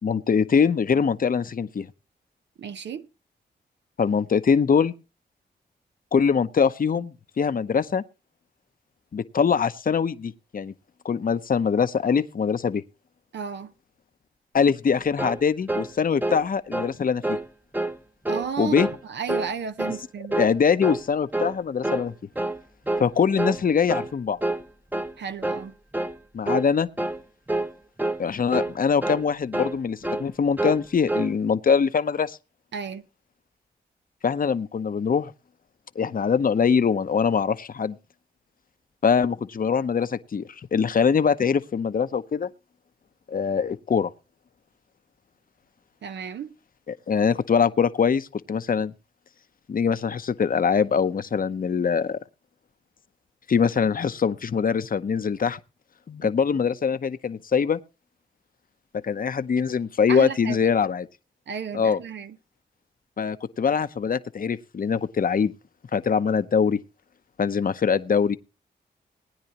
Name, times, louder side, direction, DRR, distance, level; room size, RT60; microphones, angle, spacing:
voice 1, 0.0-1.9 4.0-4.9 6.1-8.0 9.1-10.7 11.0-12.8 14.5-17.4 18.6-18.9 20.4-22.1 23.0-24.4 26.3-26.9 28.2-32.4 34.2-35.3 36.0-38.0 39.0-42.5 43.3-44.1 46.9-48.9 49.7-52.2 53.5-55.6 56.1-57.8 59.0-61.1 61.7-62.0 63.2-65.5 65.9-66.8 67.4-68.4, left 6 dB, 50° left, 0.8 m, -23 dB
voice 2, 2.6-3.1 13.3-13.7 18.3-18.7 19.1-20.3 25.2-25.7 32.7-33.0 46.0-46.5 56.2-56.3 60.1-60.6 61.5-62.3, right 7 dB, 70° right, 0.8 m, -33 dB
sound 1, 15.2-15.4 15.7-15.9 16.2-16.4 16.7-16.9 17.2-17.5 17.7-18.0 18.3-18.5 18.8-19.0 19.3-19.5 19.8-20.0 20.3-20.5 20.8-21.0 21.3-21.6 21.8-22.1 22.4-22.6 22.9-23.1 23.4-23.6 23.9-24.1 24.4-24.6 24.9-25.1 25.4-25.7 25.9-26.2 26.5-26.7 27.0-27.2 27.5-27.7 28.0-28.2 28.5-28.8 29.0-29.2 29.5-29.8 30.0-30.3 30.6-30.8 31.1-31.3, right 2 dB, 10° right, 0.9 m, -27 dB
19.5 x 9.7 x 2.9 m
cardioid pair, 55°, 19 cm